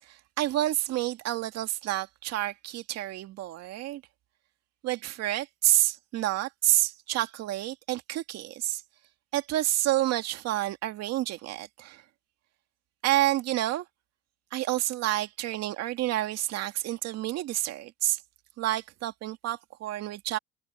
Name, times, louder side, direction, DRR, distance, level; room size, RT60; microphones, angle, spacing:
voice 1, 0.0-4.0 4.8-8.8 9.3-12.0 13.0-13.8 14.5-18.2 18.6-20.4, right 14 dB, 60° right, 2.3 m, -29 dB
supercardioid pair, 110°, 29 cm